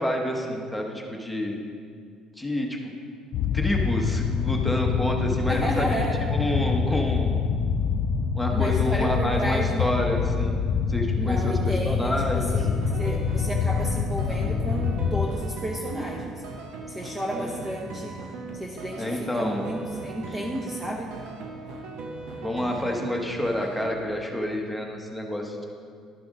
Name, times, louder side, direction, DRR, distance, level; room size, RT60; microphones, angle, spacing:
voice 1, 0.0-1.6 2.4-2.9 3.5-5.9 6.3-7.3 8.3-10.6 10.9-12.6 17.3-17.7 19.0-19.6 22.4-25.6, left 1 dB, ahead, 0 dB, 1.0 m, -28 dB
sound 1, 3.3-15.3, left 6 dB, 65° left, 0.4 m, -25 dB
voice 2, 5.5-6.2 8.5-9.9 11.2-16.4 16.9-18.2 18.5-21.2, right 1 dB, 15° right, -1 dB, 0.7 m, -32 dB
sound 2, 12.5-24.1, right 3 dB, 80° right, 0.9 m, -39 dB
11.5 x 5.9 x 3.7 m, 2.2 s
cardioid pair, 125°, 0 cm